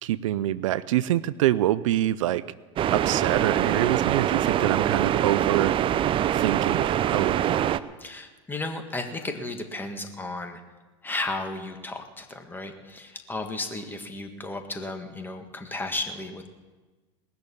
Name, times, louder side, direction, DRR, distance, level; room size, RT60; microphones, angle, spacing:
voice 1, 0.0-2.5 2.9-5.7 6.3-7.6, right 13 dB, 80° right, 18 dB, 0.5 m, -25 dB
sound 1, 2.8-7.8, right 11 dB, 35° right, 0.5 m, -24 dB
voice 2, 8.0-10.6 11.0-16.5, left 2 dB, 10° left, 5 dB, 1.6 m, -34 dB
19.5 x 6.6 x 8.4 m, 1.3 s
hypercardioid pair, 100°, 16 cm